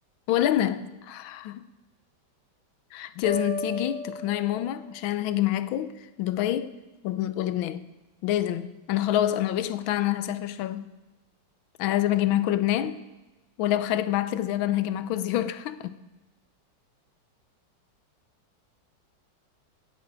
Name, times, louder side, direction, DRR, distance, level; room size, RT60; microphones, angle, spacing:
voice 1, 0.3-1.6 2.9-6.8 7.0-7.9 8.2-10.9 11.8-13.0 13.6-16.0, left 12 dB, 85° left, 1.5 m, -27 dB
sound 1, 3.2-5.1, equal, 25° left, 3.9 m, -35 dB
16.5 x 8.5 x 4.8 m
omnidirectional pair, 2.2 m